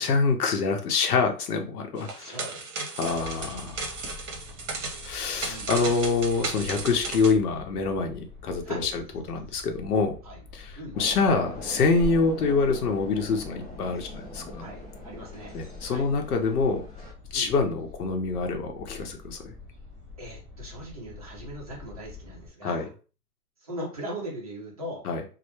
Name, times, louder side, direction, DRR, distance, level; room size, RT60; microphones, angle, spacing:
voice 1, 0.0-2.4 3.0-3.9 5.0-9.0 9.3-10.1 10.5-14.7 15.5-16.8 17.3-19.5 22.6-22.9 25.0-25.2, left 4 dB, 70° left, 4 dB, 0.7 m, -26 dB
sound 1, 2.0-7.3, right 3 dB, 50° right, 0.8 m, -35 dB
voice 2, 2.2-2.7 3.1-3.4 4.5-4.6 5.4-5.7 8.6-8.9 10.2-10.4 10.7-11.0 14.6-15.6 15.9-16.1 17.3-17.5 20.2-22.9 23.6-25.0, right 1 dB, 25° right, -3 dB, 0.5 m, -39 dB
sound 2, 3.1-22.5, left 3 dB, 5° right, 0.8 m, -47 dB
sound 3, 10.9-17.1, left 1 dB, 25° left, 0.7 m, -41 dB
2.1 x 2.1 x 2.9 m, 0.37 s
hypercardioid pair, 155°, 47 cm